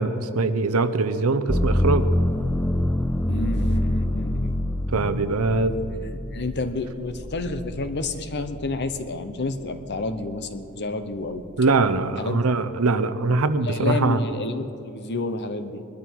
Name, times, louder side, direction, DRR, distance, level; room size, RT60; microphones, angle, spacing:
voice 1, 0.0-2.1 4.9-5.7 11.6-14.2, right 3 dB, 75° right, 11 dB, 0.7 m, -22 dB
sound 1, 1.5-9.3 9.8-10.6, left 1 dB, 5° left, 0.4 m, -26 dB
voice 2, 3.3-4.5 5.6-11.4 12.2-12.4 13.6-15.8, left 2 dB, 50° left, 9 dB, 0.9 m, -30 dB
21.0 x 12.5 x 4.6 m, 2.6 s
head